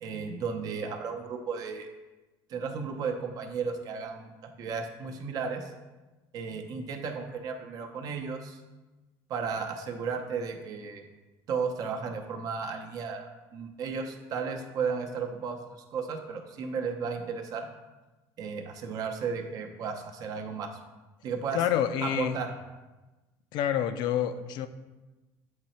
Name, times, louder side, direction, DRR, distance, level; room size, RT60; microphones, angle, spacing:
voice 1, 0.0-1.9 2.5-5.7 6.3-8.6 9.3-11.0 11.5-15.6 15.9-17.7 18.4-20.7 21.2-21.6 22.0-22.5, right 5 dB, 50° right, 4 dB, 0.7 m, -34 dB
voice 2, 21.5-22.4 23.5-24.7, left 10 dB, 65° left, 11 dB, 0.4 m, -28 dB
7.5 x 3.0 x 4.3 m, 1.1 s
cardioid pair, 135°, 8 cm